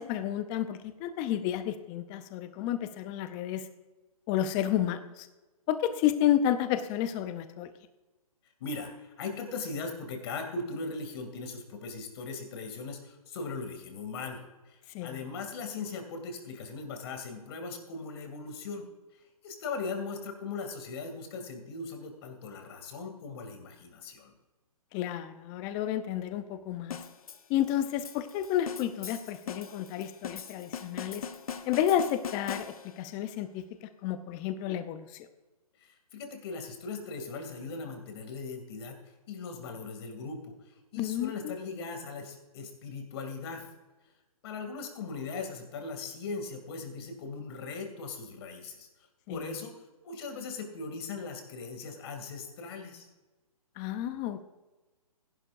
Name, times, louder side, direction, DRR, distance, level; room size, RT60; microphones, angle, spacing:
voice 1, 0.0-3.7 4.3-5.3 5.7-7.7 14.9-15.2 24.9-27.0 27.5-31.3 31.7-35.1 41.0-41.5 49.3-49.4 53.8-54.4, left 11 dB, 20° left, 11 dB, 0.6 m, -31 dB
voice 2, 8.6-18.8 19.4-24.3 35.8-39.0 39.3-40.5 40.9-43.7 44.4-48.9 49.3-49.7 50.0-53.1, left 4 dB, 40° left, 5 dB, 2.6 m, -39 dB
sound 1, 26.9-33.1, left 7 dB, 70° left, 1.1 m, -41 dB
16.0 x 11.0 x 2.6 m, 1.1 s
hypercardioid pair, 145°, 19 cm